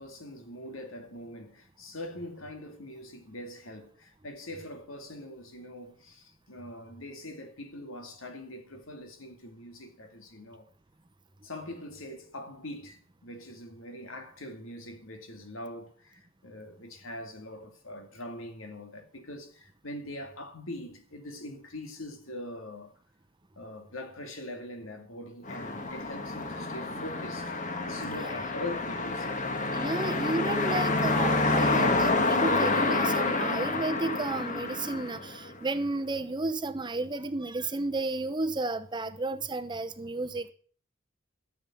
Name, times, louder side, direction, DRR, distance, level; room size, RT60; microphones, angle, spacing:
voice 1, 0.0-10.7 11.4-22.9 23.6-27.6 27.9-29.4, left 1 dB, 85° left, 2.5 m, -42 dB
sound 1, 25.5-35.7, left 2 dB, 40° left, 1.4 m, -28 dB
voice 2, 29.7-40.5, right 2 dB, 20° right, 0.8 m, -32 dB
13.5 x 7.4 x 7.4 m
head